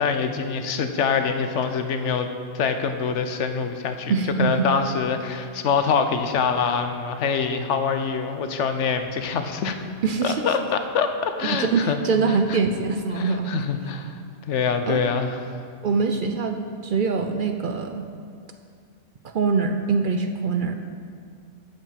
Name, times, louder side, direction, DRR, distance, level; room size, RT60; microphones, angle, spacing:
voice 1, 0.0-2.3 2.5-4.1 4.4-9.8 10.2-12.0 12.3-12.6 13.1-14.2 14.5-15.4, left 6 dB, 80° left, 7 dB, 1.1 m, -25 dB
voice 2, 4.1-4.7 10.0-10.4 11.5-13.5 14.8-15.0 15.8-18.1 19.2-20.8, right 5 dB, 55° right, 5 dB, 0.7 m, -23 dB
15.0 x 5.3 x 5.8 m, 2.3 s
omnidirectional pair, 1.2 m